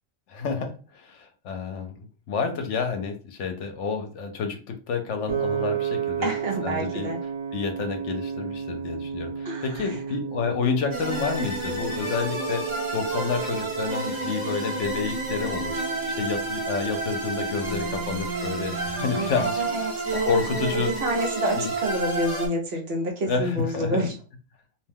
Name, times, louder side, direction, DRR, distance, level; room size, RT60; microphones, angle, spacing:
voice 1, 0.3-6.3 6.6-7.1 7.5-12.6 12.9-19.8 20.3-20.9 21.6-21.7 23.3-24.0, left 5 dB, 75° left, 5 dB, 0.9 m, -29 dB
Piano, 5.3-17.5, right 7 dB, 90° right, 1.1 m, -34 dB
voice 2, 6.2-7.2 9.4-10.0 12.4-12.8 19.1-24.1, right 1 dB, 60° right, 1 dB, 0.9 m, -29 dB
sound 1, 10.9-22.5, right 3 dB, 25° right, 1.0 m, -30 dB
2.6 x 2.2 x 3.3 m, 0.36 s
omnidirectional pair, 1.3 m